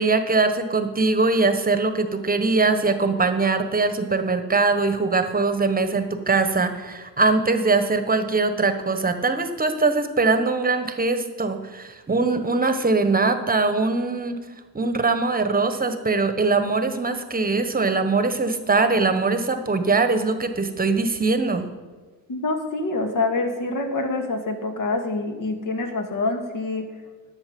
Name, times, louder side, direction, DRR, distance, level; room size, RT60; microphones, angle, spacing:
voice 1, 0.0-14.4 14.7-21.7, right 3 dB, 20° right, 9 dB, 1.2 m, -22 dB
voice 2, 22.3-26.9, left 3 dB, 55° left, 4 dB, 2.0 m, -26 dB
12.0 x 7.1 x 5.3 m, 1.4 s
cardioid pair, 90°, 39 cm